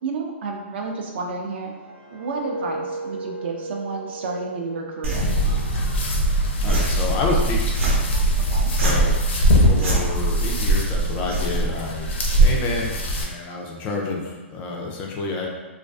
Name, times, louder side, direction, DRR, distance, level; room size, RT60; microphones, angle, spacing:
voice 1, 0.0-1.7 2.1-5.3 8.5-8.7, right 4 dB, 55° right, 1 dB, 0.4 m, -31 dB
sound 1, 1.4-6.4 6.8-7.1, right 2 dB, 35° right, 0.9 m, -36 dB
sound 2, 5.0-13.0, right 1 dB, 75° right, 0.8 m, -31 dB
sound 3, 5.1-13.2, right 1 dB, 70° left, 0.5 m, -21 dB
voice 2, 6.6-7.7 8.8-9.2 9.6-12.9 13.2-15.5, left 3 dB, 20° left, -1 dB, 0.3 m, -29 dB
2.5 x 2.3 x 2.3 m, 1.2 s
hypercardioid pair, 155°, 7 cm